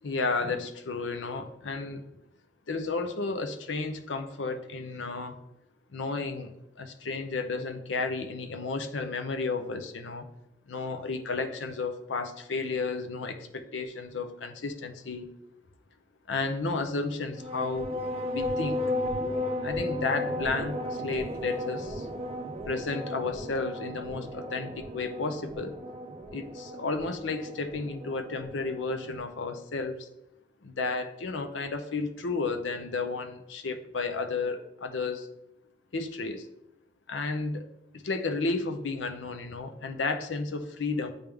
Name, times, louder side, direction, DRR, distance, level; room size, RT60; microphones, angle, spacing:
voice 1, 0.0-2.0 2.7-5.4 5.9-10.3 10.7-15.3 16.3-17.9 18.3-18.8 19.6-22.1 22.7-25.8 26.3-30.1 30.6-35.3 35.9-36.5 37.1-37.7 37.9-41.1, left 3 dB, 85° left, 7 dB, 0.7 m, -32 dB
sound 1, 17.3-29.2, left 1 dB, 35° right, 0.5 m, -35 dB
9.0 x 3.5 x 3.4 m, 0.84 s
head